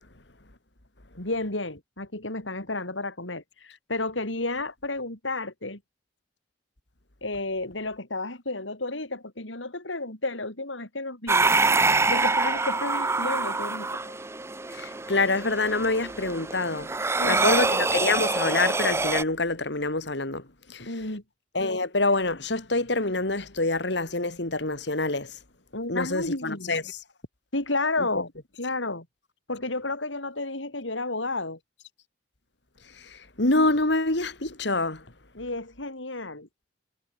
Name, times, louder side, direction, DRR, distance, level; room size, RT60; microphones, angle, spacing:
voice 1, 1.2-5.8 7.2-11.5 12.1-14.2 17.2-17.6 20.8-21.2 25.7-26.7 27.5-28.3 28.6-29.1 29.5-31.6 35.4-36.5, left 2 dB, 85° left, 5.4 m, -32 dB
sound 1, 11.3-19.2, right 3 dB, 15° right, 0.6 m, -25 dB
voice 2, 14.7-16.9 17.2-20.4 20.7-20.9 21.5-25.4 25.9-26.8 32.9-35.0, left 2 dB, 65° left, 3.0 m, -26 dB
head